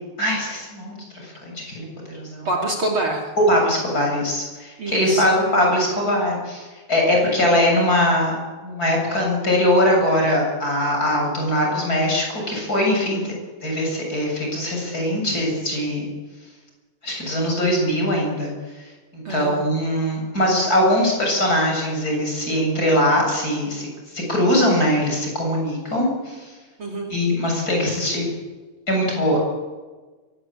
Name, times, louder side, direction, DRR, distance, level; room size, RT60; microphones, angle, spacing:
voice 1, 0.2-2.5 3.5-8.4 8.6-13.3 13.6-16.1 17.0-18.5 19.1-23.9 24.1-26.5 27.1-28.3 28.9-29.4, left 1 dB, 25° left, -1 dB, 7.8 m, -21 dB
voice 2, 2.5-3.3 4.8-5.3 19.3-19.6 26.8-27.1, right 1 dB, 40° right, 3 dB, 3.4 m, -26 dB
23.0 x 19.0 x 8.9 m, 1.3 s
omnidirectional pair, 3.6 m